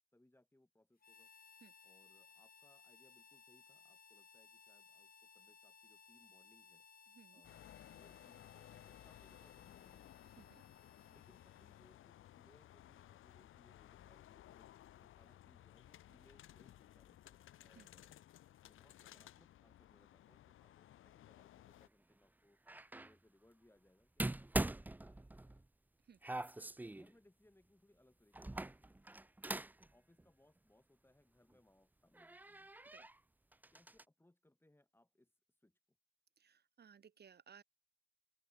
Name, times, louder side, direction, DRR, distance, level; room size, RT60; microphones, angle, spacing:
voice 1, 0.1-1.3 1.8-6.9 7.3-10.3 11.1-18.2 18.6-22.6 22.9-25.6 26.9-29.0 29.9-32.7 33.7-35.3 35.6-36.0, left 1 dB, 10° left, 7.8 m, -71 dB
Harmonica, 1.0-12.1, left 6 dB, 45° left, 7.4 m, -63 dB
sound 1, 7.4-21.9, left 13 dB, 85° left, 1.3 m, -59 dB
sound 2, 22.7-23.1 24.2-25.7 26.2-27.1 28.3-29.9 30.2-30.3 31.5-31.6 32.1-33.2 33.5-34.0, right 2 dB, 10° right, 0.6 m, -42 dB
voice 2, 36.4-37.6, right 7 dB, 55° right, 2.9 m, -61 dB
open air
cardioid pair, 80°, 20 cm